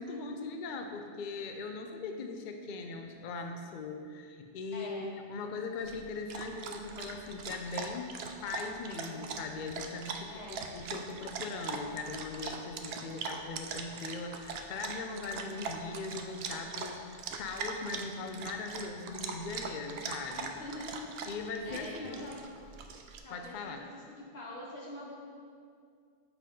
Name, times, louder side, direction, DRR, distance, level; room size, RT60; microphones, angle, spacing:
voice 1, 0.0-8.1 8.4-20.5 21.3-22.2 23.3-23.8, left 4 dB, 60° left, 4 dB, 0.6 m, -40 dB
voice 2, 4.7-5.1 10.3-10.6 20.5-21.1 21.6-22.4 23.2-25.2, left 1 dB, 85° left, -3 dB, 1.4 m, -45 dB
Dog, 5.8-23.2, right 5 dB, 75° right, 0.8 m, -41 dB
7.5 x 3.6 x 5.2 m, 2.2 s
omnidirectional pair, 1.1 m